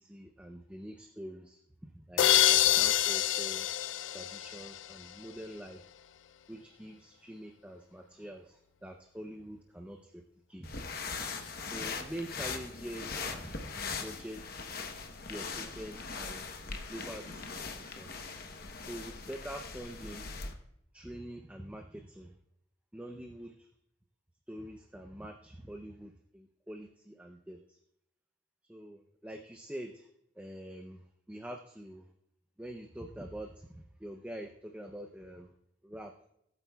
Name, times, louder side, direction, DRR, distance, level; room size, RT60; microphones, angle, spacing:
voice 1, 0.0-3.7 4.1-5.8 6.5-10.2 10.5-10.9 11.7-14.7 15.3-17.5 17.8-18.1 18.9-20.3 20.9-22.3 22.9-23.7 24.5-27.8 28.6-30.1 30.4-32.1 32.6-35.5 35.8-36.3, right 1 dB, 5° right, 3 dB, 0.5 m, -45 dB
sound 1, 2.2-5.0, left 12 dB, 75° left, 0.4 m, -26 dB
sound 2, 10.6-20.5, left 4 dB, 50° left, 0.9 m, -40 dB
18.5 x 8.3 x 2.3 m, 0.77 s
head